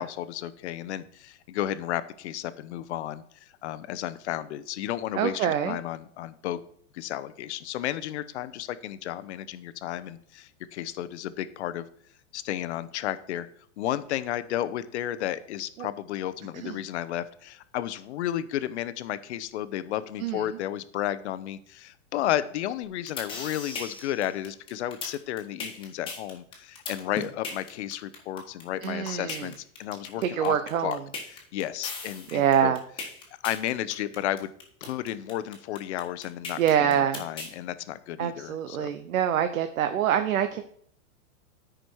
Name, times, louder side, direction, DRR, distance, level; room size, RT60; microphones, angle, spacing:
voice 1, 0.0-6.6 6.9-11.9 12.3-13.5 13.8-30.6 30.8-31.0 31.3-32.7 33.4-34.5 34.8-38.9, left 12 dB, 55° left, 14 dB, 0.7 m, -33 dB
voice 2, 5.1-5.8 15.8-15.9 16.5-16.8 20.2-20.6 28.8-29.5 30.2-31.0 32.3-32.8 36.6-37.2 38.2-40.6, right 9 dB, 80° right, 9 dB, 0.9 m, -25 dB
sound 1, 22.8-37.5, left 4 dB, 10° left, 1.6 m, -37 dB
12.5 x 5.2 x 4.6 m, 0.62 s
supercardioid pair, 155°, 41 cm